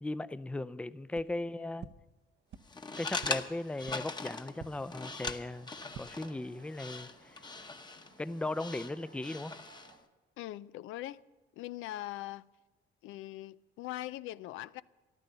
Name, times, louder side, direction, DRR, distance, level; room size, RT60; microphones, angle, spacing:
voice 1, 0.0-1.9 3.0-5.7 6.0-7.4 8.2-9.5, left 2 dB, 5° left, 0.4 m, -37 dB
sound 1, 1.1-1.2 1.8-1.9 2.5-2.6 3.2-3.3 3.8-3.9 4.6-4.7 5.2-5.3 5.8-6.0, right 7 dB, 60° right, 0.8 m, -45 dB
voice 2, 1.6-2.0 10.4-11.2 11.6-12.4 13.0-14.8, left 15 dB, 90° left, 0.4 m, -42 dB
sound 2, 2.6-10.0, left 3 dB, 20° left, 0.9 m, -41 dB
sound 3, 4.5-10.0, right 5 dB, 85° right, 3.6 m, -61 dB
14.5 x 11.5 x 6.7 m
cardioid pair, 90°, 20 cm